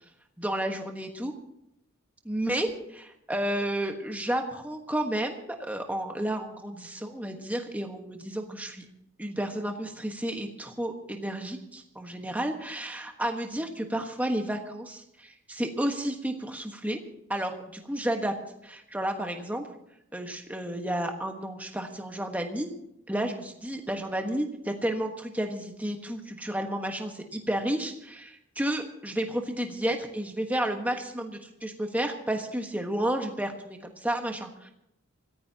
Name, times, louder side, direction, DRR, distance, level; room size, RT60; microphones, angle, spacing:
voice 1, 0.4-1.3 2.2-2.7 3.3-8.9 9.2-17.0 17.3-18.3 18.6-19.7 20.1-22.7 23.1-34.7, right 1 dB, 5° right, 3 dB, 1.3 m, -31 dB
25.0 x 15.0 x 2.9 m, 0.81 s
head